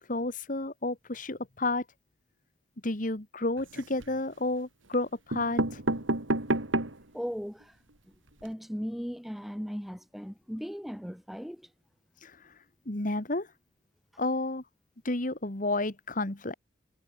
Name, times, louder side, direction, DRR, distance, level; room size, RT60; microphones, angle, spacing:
voice 1, 0.1-1.8 2.8-5.8 12.2-12.5 12.9-13.5 14.2-14.6 15.0-16.5, left 2 dB, 45° left, 1.7 m, -31 dB
sound 1, 3.6-4.2 4.9-5.0 5.3-7.1 7.6-7.7 7.9-8.0 8.3-8.5, right 2 dB, 85° right, 3.1 m, -30 dB
voice 2, 7.1-7.8 8.4-11.7, equal, ahead, 2.9 m, -37 dB
head